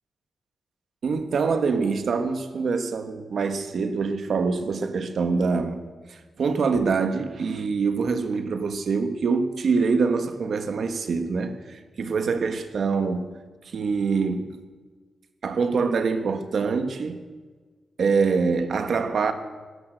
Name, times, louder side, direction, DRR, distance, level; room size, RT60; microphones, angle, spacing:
voice 1, 1.0-5.8 6.1-13.4 13.6-14.6 15.4-17.2 18.0-19.3, right 4 dB, 60° right, 1.5 m, -25 dB
16.5 x 13.5 x 6.5 m
wide cardioid pair, 135°, 0 cm